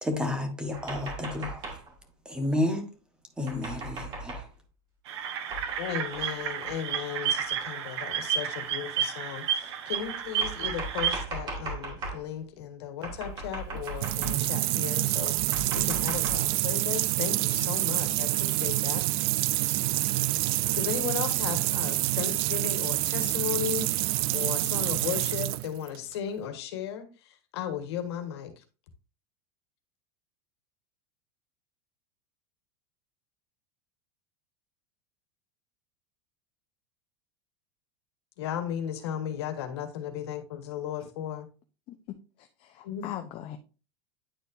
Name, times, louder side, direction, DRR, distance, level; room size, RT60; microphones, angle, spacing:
voice 1, 0.0-1.8 2.2-2.9 3.4-4.5, left 1 dB, 5° right, 1.3 m, -31 dB
sound 1, 0.7-1.9 3.5-4.5 5.5-5.8 6.1-6.3 6.6-6.7 7.6-7.7 8.7-8.8 9.9-12.2 13.0-14.6 15.3-16.4, right 2 dB, 35° right, 2.5 m, -38 dB
sound 2, 5.1-11.2, right 8 dB, 80° right, 1.2 m, -31 dB
voice 2, 5.8-19.0 20.8-28.5 38.4-41.5 42.8-43.1, left 9 dB, 80° left, 1.5 m, -35 dB
sound 3, 13.7-26.1, right 18 dB, 60° right, 0.4 m, -27 dB
voice 3, 42.4-43.6, left 11 dB, 40° left, 0.7 m, -40 dB
9.8 x 4.3 x 2.7 m
supercardioid pair, 140°, 14 cm